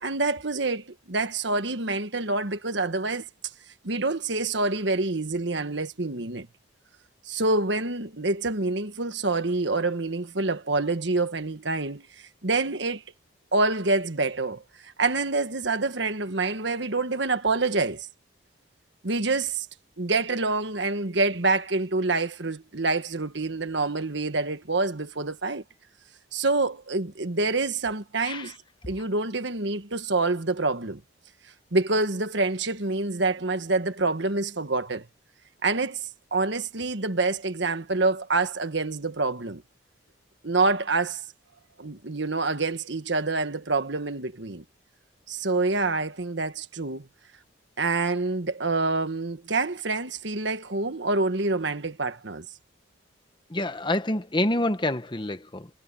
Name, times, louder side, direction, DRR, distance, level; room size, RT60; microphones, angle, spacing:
voice 1, 0.0-3.3 3.8-6.5 7.2-12.1 12.4-13.0 13.5-18.1 19.0-19.7 20.0-25.6 26.3-28.5 28.9-31.0 31.7-35.1 35.6-39.6 40.4-41.2 41.8-44.6 45.3-47.1 47.8-52.5, right 3 dB, 65° right, 1.4 m, -27 dB
voice 2, 53.5-55.7, left 1 dB, 25° left, 1.1 m, -27 dB
head